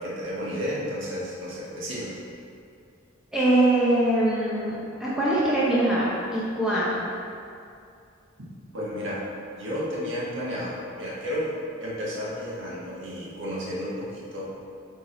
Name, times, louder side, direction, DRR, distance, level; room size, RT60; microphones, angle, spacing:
voice 1, 0.0-2.1 8.4-8.5 8.7-9.2 9.6-11.5 11.8-14.5, equal, 65° right, -7 dB, 1.6 m, -32 dB
voice 2, 3.3-7.1, right 1 dB, 5° right, -9 dB, 0.9 m, -23 dB
8.8 x 3.7 x 4.0 m, 2.4 s
head